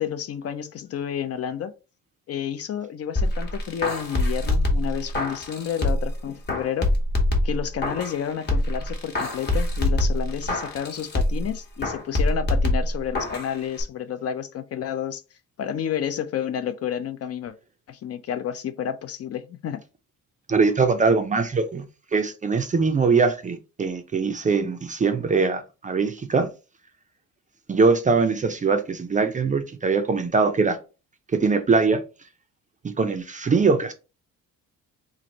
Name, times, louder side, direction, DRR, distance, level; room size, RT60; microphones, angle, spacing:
voice 1, 0.0-1.7 2.3-6.9 7.4-15.2 15.6-17.5 17.9-19.8, left 9 dB, 45° left, 0.4 m, -30 dB
sound 1, 3.2-6.1 6.5-8.2 8.5-11.5 11.8-13.5 13.8-13.9, left 1 dB, 30° left, 0.9 m, -24 dB
voice 2, 20.5-21.8 22.1-26.5 27.7-30.8 31.3-32.0 33.0-33.9, right 4 dB, 25° right, 0.4 m, -22 dB
3.1 x 2.5 x 3.9 m
cardioid pair, 140°, 33 cm